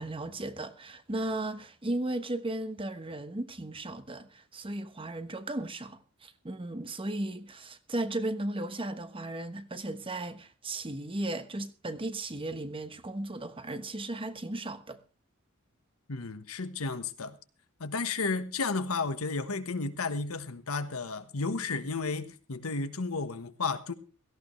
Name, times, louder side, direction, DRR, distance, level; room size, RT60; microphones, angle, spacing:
voice 1, 0.0-15.0, right 1 dB, 25° right, 1.2 m, -36 dB
voice 2, 16.1-17.4 17.8-23.9, left 4 dB, 80° left, 1.2 m, -33 dB
17.5 x 15.0 x 3.2 m
head